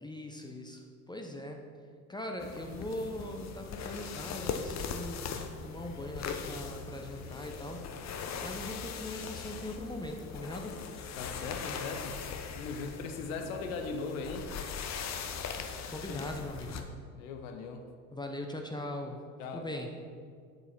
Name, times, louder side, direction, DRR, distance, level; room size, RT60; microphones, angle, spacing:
voice 1, 0.0-1.6 2.1-5.3 5.6-7.8 8.4-10.8 15.9-16.8 18.1-19.2 19.5-19.9, left 1 dB, 10° left, 2 dB, 0.8 m, -40 dB
sound 1, 2.4-16.8, left 6 dB, 40° left, 0.8 m, -40 dB
voice 2, 11.2-12.2 12.5-14.5 16.1-16.2 17.1-17.9 19.4-19.8, left 4 dB, 70° left, 5 dB, 1.0 m, -39 dB
8.2 x 6.9 x 4.2 m, 2.1 s
figure-of-eight pair, 60°, 43 cm